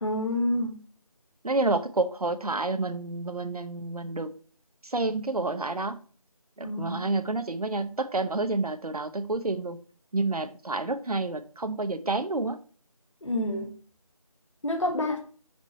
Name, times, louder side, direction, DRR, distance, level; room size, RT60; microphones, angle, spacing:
voice 1, 0.0-0.8 6.6-7.0 13.2-13.7 14.6-15.2, left 1 dB, 55° left, 2 dB, 1.6 m, -28 dB
voice 2, 1.4-4.3 4.8-6.0 6.6-9.8 10.1-12.6, right 2 dB, 85° right, 9 dB, 0.9 m, -29 dB
6.0 x 4.3 x 5.2 m, 0.41 s
figure-of-eight pair, 180°, 19 cm